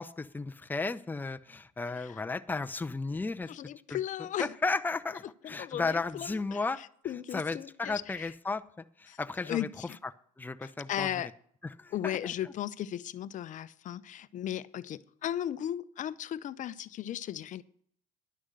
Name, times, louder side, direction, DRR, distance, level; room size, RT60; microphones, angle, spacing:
voice 1, 0.0-3.5 3.9-4.0 4.4-6.8 7.3-8.6 9.0-9.7 10.4-11.2 11.8-12.2 12.4-12.5, left 3 dB, 10° left, 9 dB, 0.7 m, -34 dB
voice 2, 3.5-4.5 5.4-6.6 7.0-8.3 9.1-9.2 9.5-10.0 10.6-11.3 11.9-17.6, left 11 dB, 50° left, 16 dB, 0.7 m, -36 dB
11.5 x 6.3 x 7.7 m, 0.62 s
supercardioid pair, 80°, 17 cm